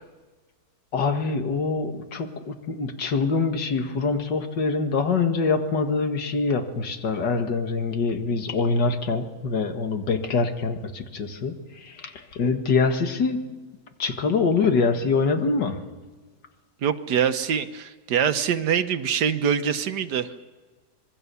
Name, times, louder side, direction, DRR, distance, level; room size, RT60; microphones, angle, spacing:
voice 1, 0.9-11.6 11.8-13.4 14.0-15.8, left 4 dB, 90° left, 6 dB, 2.4 m, -24 dB
voice 2, 16.8-20.3, right 8 dB, 75° right, 10 dB, 1.5 m, -24 dB
26.0 x 22.0 x 7.0 m, 1.4 s
omnidirectional pair, 1.8 m